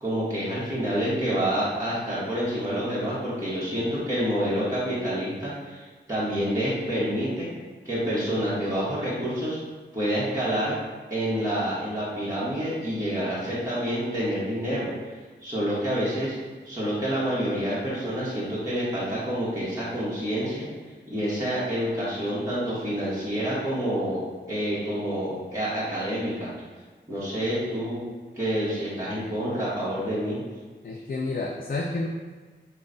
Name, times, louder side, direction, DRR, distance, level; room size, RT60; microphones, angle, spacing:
voice 1, 0.0-7.5 7.8-9.6 9.9-10.8 11.1-14.9 15.4-16.3 16.6-20.7 21.1-24.2 24.5-26.5 27.1-28.0 28.3-30.4, equal, 15° right, -10 dB, 1.3 m, -28 dB
voice 2, 30.8-32.1, left 3 dB, 50° left, 0 dB, 0.4 m, -30 dB
4.9 x 2.3 x 3.9 m, 1.4 s
wide cardioid pair, 70°, 19 cm